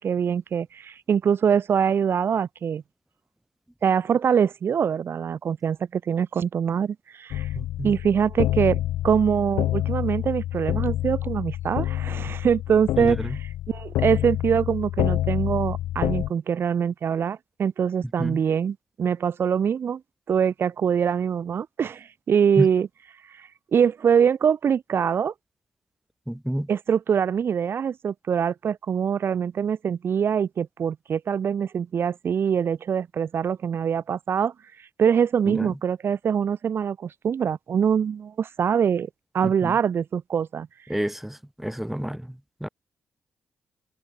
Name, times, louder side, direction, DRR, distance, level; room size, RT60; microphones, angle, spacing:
voice 1, 0.0-2.8 3.8-7.5 7.8-13.2 13.7-20.0 20.3-22.9 23.3-25.3 26.7-34.5 35.0-40.7, right 7 dB, 60° right, 1.2 m, -24 dB
sound 1, 7.3-16.3, left 14 dB, 90° left, 1.2 m, -27 dB
voice 2, 7.6-7.9 13.0-13.4 18.2-18.4 22.6-22.7 26.3-26.7 35.5-35.7 39.4-39.8 40.9-42.7, equal, 5° right, 1.9 m, -29 dB
cardioid pair, 60°, 4 cm